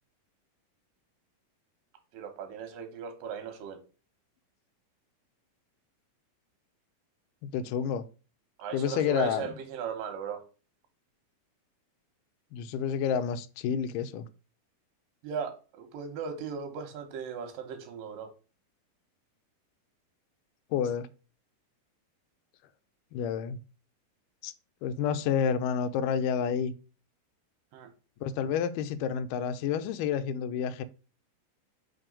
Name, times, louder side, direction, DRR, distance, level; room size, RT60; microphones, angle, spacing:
voice 1, 2.1-3.8 8.6-10.4 15.2-18.3 27.7-27.9, right 7 dB, 80° right, 2.7 m, -37 dB
voice 2, 7.4-8.0 8.7-9.5 12.5-14.3 20.7-21.1 23.1-23.6 24.4-24.5 24.8-26.7 28.2-30.8, left 7 dB, 80° left, 2.1 m, -29 dB
5.9 x 3.5 x 5.2 m
omnidirectional pair, 4.0 m